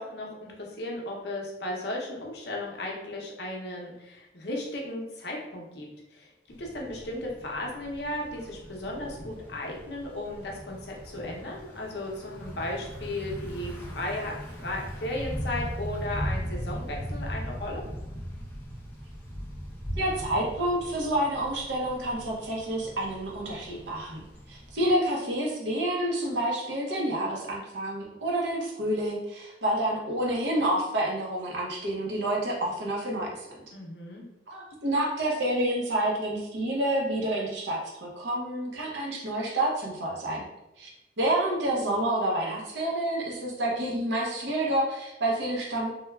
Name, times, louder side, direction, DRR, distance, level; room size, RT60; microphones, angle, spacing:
voice 1, 0.0-6.3 6.6-17.8 33.7-34.3, left 1 dB, 65° left, -1 dB, 0.6 m, -35 dB
Thunder / Bicycle, 6.5-24.9, equal, 10° left, 0.4 m, -39 dB
voice 2, 19.9-33.5 34.5-40.5 40.8-40.9 41.2-46.0, right 1 dB, 80° right, -2 dB, 0.7 m, -28 dB
3.2 x 2.1 x 2.2 m, 0.97 s
head